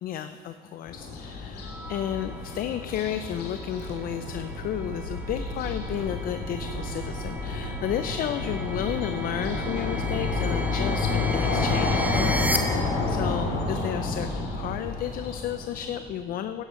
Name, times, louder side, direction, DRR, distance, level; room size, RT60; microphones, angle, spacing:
voice 1, 0.0-16.6, left 10 dB, 60° left, 10 dB, 0.4 m, -32 dB
sound 1, 0.9-16.0, left 3 dB, 75° left, 2.1 m, -30 dB
sound 2, 1.6-12.6, right 1 dB, 10° right, 1.0 m, -37 dB
sound 3, 3.8-15.2, right 8 dB, 85° right, 0.5 m, -41 dB
13.0 x 10.0 x 3.7 m, 2.4 s
cardioid pair, 110°, 17 cm